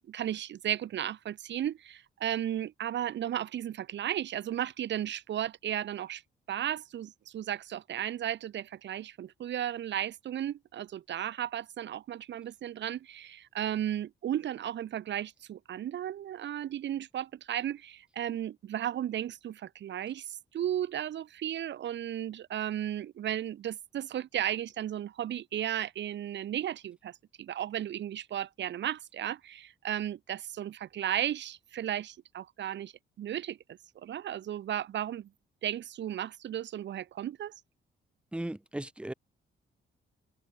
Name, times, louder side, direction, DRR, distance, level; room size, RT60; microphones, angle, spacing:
voice 1, 0.1-6.2 6.5-32.9 33.2-35.3 35.6-37.5, right 11 dB, 70° right, 2.0 m, -35 dB
voice 2, 38.3-39.1, right 1 dB, 5° right, 1.7 m, -36 dB
cardioid pair, 140°, 19 cm